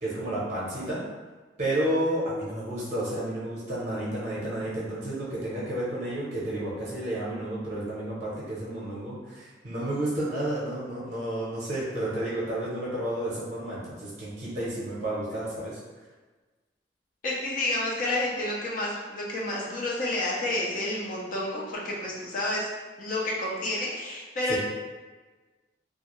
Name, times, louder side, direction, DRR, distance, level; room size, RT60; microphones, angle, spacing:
voice 1, 0.0-1.0 1.6-15.8 24.5-24.6, right 1 dB, 40° right, -7 dB, 0.6 m, -31 dB
voice 2, 17.2-22.7 23.0-24.6, left 1 dB, 50° left, -3 dB, 0.4 m, -30 dB
2.3 x 2.1 x 2.9 m, 1.3 s
head